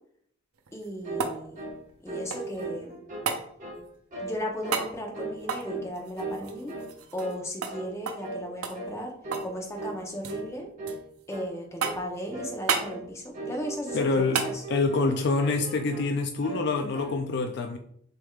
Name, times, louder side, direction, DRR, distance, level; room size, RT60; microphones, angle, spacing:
sound 1, 0.6-2.7 3.3-3.5 4.7-4.9 5.4-7.4 7.6-7.8 8.1-8.3 8.6-9.5 9.8-10.4 10.9-11.4 11.8-12.2 12.7-12.9 14.3-14.6 16.9-17.0, right 6 dB, 85° right, 0.6 m, -32 dB
voice 1, 0.7-1.6 2.0-3.0 4.2-6.8 7.1-9.1 9.4-10.7 11.3-14.6, equal, 15° left, 0 dB, 0.7 m, -36 dB
sound 2, 1.0-1.3 1.6-1.8 2.1-3.3 3.6-3.8 4.1-4.4 4.6-4.9 5.1-5.9 6.2-6.9 7.2-7.4 7.7-7.9 8.2-8.4 8.7-9.0 9.2-9.5 9.8-10.0 10.3-10.5 10.8-11.0 11.3-11.5 11.8-12.1 12.3-12.6 12.8-13.0 13.3-14.1 14.4-15.1 15.4-16.1 16.4-17.2, right 2 dB, 35° right, 1.4 m, -37 dB
voice 2, 13.9-14.4 14.7-17.8, left 3 dB, 50° left, 5 dB, 0.3 m, -26 dB
6.5 x 3.4 x 2.4 m, 0.67 s
head